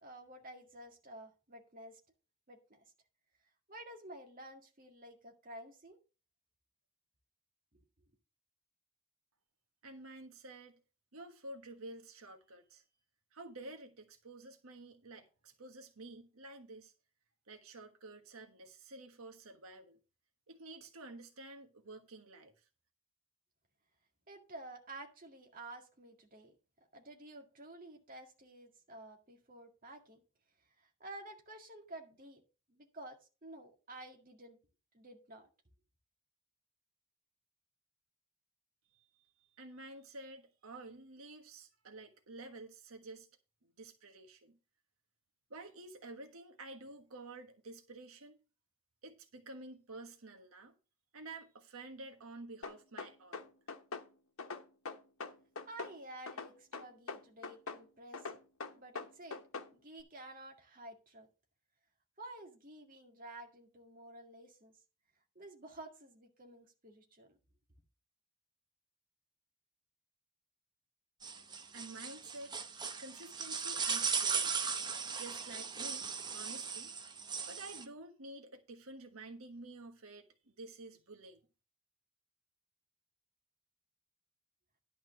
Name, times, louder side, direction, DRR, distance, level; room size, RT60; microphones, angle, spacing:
voice 1, 0.0-2.0 2.5-2.8 3.7-6.0 24.3-26.6 26.9-30.2 30.8-32.4 32.7-34.6 34.9-35.5 55.7-58.4 58.8-59.4 59.7-61.3 62.2-64.7 65.4-67.4, right 1 dB, 40° right, 2.1 m, -51 dB
voice 2, 9.8-10.8 11.1-12.8 13.3-16.9 17.5-20.0 20.5-22.6 38.9-39.2 39.5-43.3 43.6-44.6 45.5-48.4 49.0-50.7 51.1-53.5 71.7-72.7 73.0-74.5 75.2-76.9 77.5-81.5, right 2 dB, 85° right, 1.3 m, -50 dB
sound 1, 52.6-54.1 54.4-56.0 56.3-57.8 58.1-59.7, left 4 dB, 80° left, 1.1 m, -43 dB
sound 2, 71.2-77.9, right 6 dB, 20° right, 0.7 m, -37 dB
11.0 x 4.3 x 6.8 m
head